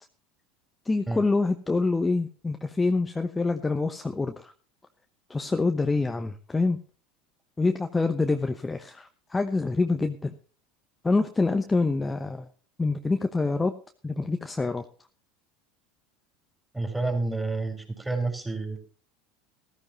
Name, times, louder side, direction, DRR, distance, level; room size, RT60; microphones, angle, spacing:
voice 1, 0.9-4.5 5.3-6.8 7.6-10.3 11.0-12.5 12.8-13.7 14.0-14.8, left 3 dB, 15° left, 7 dB, 0.9 m, -26 dB
voice 2, 16.7-18.8, right 3 dB, 10° right, 5 dB, 4.4 m, -29 dB
14.5 x 14.0 x 3.0 m, 0.39 s
hypercardioid pair, 85°, 0 cm